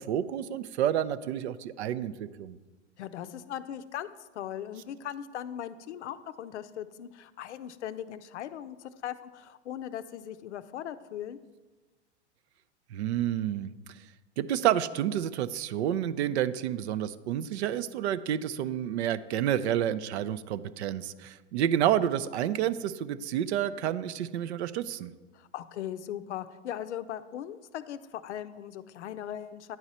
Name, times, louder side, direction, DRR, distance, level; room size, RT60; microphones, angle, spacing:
voice 1, 0.0-2.6 12.9-13.7 14.4-25.1, right 10 dB, 70° right, 15 dB, 0.5 m, -29 dB
voice 2, 3.0-4.1 4.3-11.4 25.3-29.8, left 10 dB, 75° left, 12 dB, 0.5 m, -39 dB
9.3 x 4.9 x 4.2 m, 1.2 s
hypercardioid pair, 105°, 35 cm